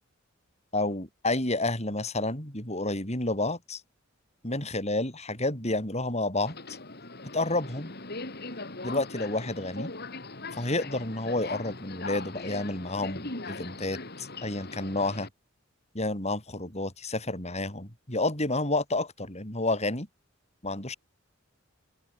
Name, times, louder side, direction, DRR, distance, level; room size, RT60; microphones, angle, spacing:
voice 1, 0.7-3.8 4.4-6.6 7.3-7.9 8.8-9.9 10.5-15.3 15.9-20.1 20.6-20.9, left 2 dB, 30° left, 7.6 m, -30 dB
Subway metro underground, 6.4-15.3, left 3 dB, 50° left, 4.6 m, -40 dB
open air
head